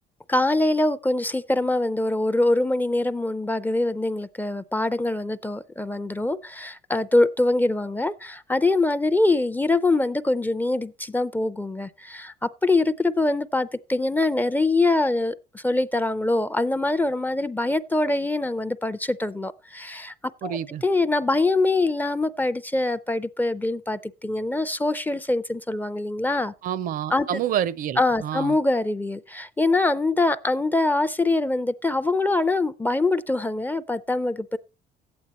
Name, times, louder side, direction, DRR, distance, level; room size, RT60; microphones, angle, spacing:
voice 1, 0.3-20.1 20.4-20.6 20.8-26.5 27.1-27.3 28.0-34.6, left 2 dB, 10° left, 0.4 m, -24 dB
voice 2, 20.4-20.8 26.6-28.6, right 10 dB, 55° right, 0.5 m, -28 dB
11.5 x 8.7 x 4.1 m
cardioid pair, 110°, 17 cm